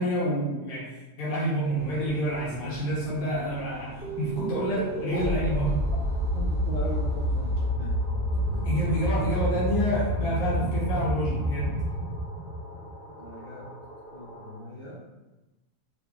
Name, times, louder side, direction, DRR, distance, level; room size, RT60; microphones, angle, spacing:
voice 1, 0.0-5.8 8.6-11.7, right 1 dB, 75° left, -7 dB, 1.4 m, -28 dB
sound 1, 1.8-7.7, right 2 dB, 65° right, 1.7 m, -44 dB
sound 2, 4.0-13.3, equal, 40° left, 0.6 m, -29 dB
sound 3, 5.1-14.6, equal, 35° right, 1.3 m, -46 dB
voice 2, 6.3-8.7 13.2-13.8 14.1-15.2, right 1 dB, 85° right, -8 dB, 1.2 m, -40 dB
4.7 x 2.2 x 2.3 m, 1.1 s
omnidirectional pair, 3.4 m